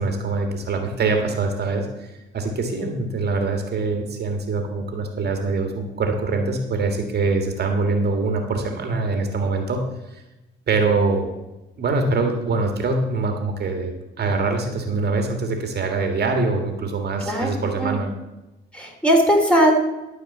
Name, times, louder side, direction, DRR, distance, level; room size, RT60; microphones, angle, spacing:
voice 1, 0.0-9.8 10.1-10.2 10.7-11.3 11.8-13.9 14.2-18.1, right 3 dB, 55° right, 4 dB, 1.8 m, -24 dB
voice 2, 18.7-19.7, equal, 5° left, 0 dB, 3.0 m, -18 dB
12.5 x 4.8 x 7.9 m, 1.0 s
cardioid pair, 90°, 20 cm